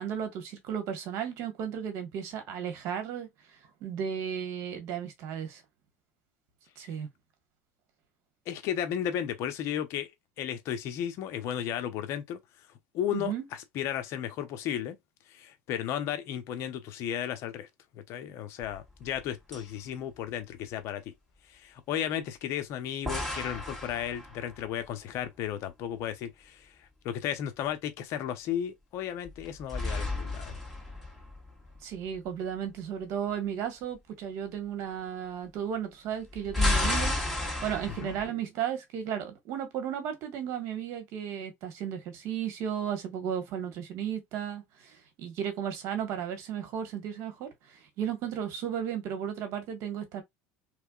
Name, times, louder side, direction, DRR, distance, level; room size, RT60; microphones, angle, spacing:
voice 1, 0.0-3.3 3.8-5.6 6.8-7.1 13.1-13.5 31.8-37.2 37.6-50.2, right 8 dB, 60° right, 1.6 m, -34 dB
voice 2, 8.5-10.1 10.4-12.4 12.9-15.0 15.3-17.7 17.9-21.1 21.5-30.6 37.9-38.1, left 10 dB, 60° left, 0.9 m, -34 dB
sound 1, 18.7-19.3 19.5-19.6 23.1-24.7 29.2-31.8 36.2-38.3, left 2 dB, ahead, 2.4 m, -32 dB
3.4 x 3.3 x 2.4 m
supercardioid pair, 115°, 5 cm